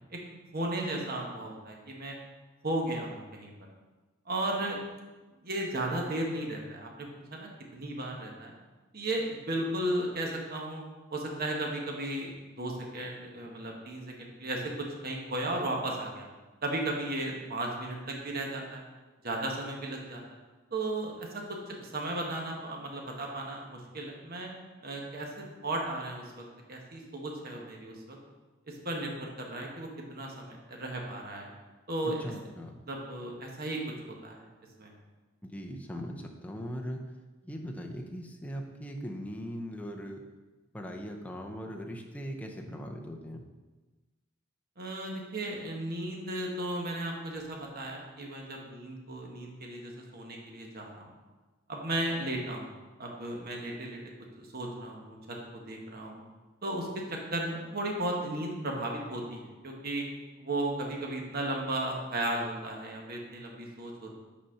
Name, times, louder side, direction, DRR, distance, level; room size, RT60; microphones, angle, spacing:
voice 1, 0.5-2.1 2.6-3.5 4.3-4.8 5.4-8.5 8.9-10.8 11.1-12.3 12.6-16.3 16.6-18.8 19.2-20.2 20.7-24.5 24.8-28.2 28.7-31.5 31.9-32.3 32.9-33.8 34.1-34.4 34.8-34.9 44.8-51.1 51.7-52.7 53.0-54.0 54.4-56.2 56.6-60.0 60.4-64.2, right 1 dB, 50° right, 0 dB, 1.2 m, -35 dB
voice 2, 32.1-32.7 35.4-37.0 37.4-40.2 40.7-43.4, equal, 10° left, 1 dB, 0.6 m, -39 dB
6.3 x 4.2 x 5.7 m, 1.2 s
head